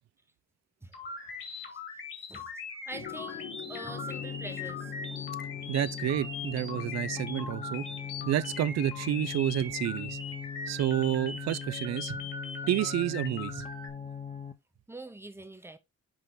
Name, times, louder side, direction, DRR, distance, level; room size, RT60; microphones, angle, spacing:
sound 1, 0.9-13.9, left 4 dB, 40° left, 2.1 m, -40 dB
voice 1, 2.2-4.9 12.1-12.3 14.9-15.8, right 2 dB, 10° right, 0.8 m, -45 dB
sound 2, 2.9-10.6, left 9 dB, 90° left, 2.1 m, -48 dB
sound 3, 3.9-14.5, left 7 dB, 20° left, 0.8 m, -41 dB
voice 2, 5.7-7.8 8.2-10.2 10.7-12.2 12.7-13.6, right 12 dB, 65° right, 0.5 m, -29 dB
6.1 x 5.1 x 3.9 m
wide cardioid pair, 155°, 29 cm